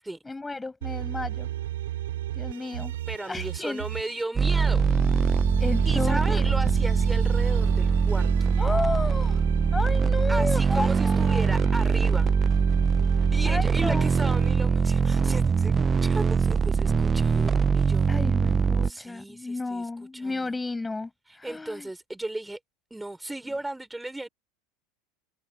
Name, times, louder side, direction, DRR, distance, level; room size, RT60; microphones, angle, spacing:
voice 1, 0.2-1.5 2.3-2.9 3.3-3.8 5.6-6.4 8.6-9.4 9.7-11.4 13.4-14.1 18.1-21.9, left 3 dB, 10° left, 6.3 m, -32 dB
sound 1, 0.8-4.2 4.7-10.2 10.7-14.5, right 13 dB, 75° right, 7.4 m, -36 dB
voice 2, 3.1-4.8 5.9-8.3 10.3-12.3 13.2-15.7 16.0-18.1 18.8-20.5 21.3-22.6 22.9-24.3, right 1 dB, 5° right, 5.4 m, -35 dB
sound 2, 4.4-18.9, right 5 dB, 25° right, 1.0 m, -22 dB
hypercardioid pair, 90°, 0 cm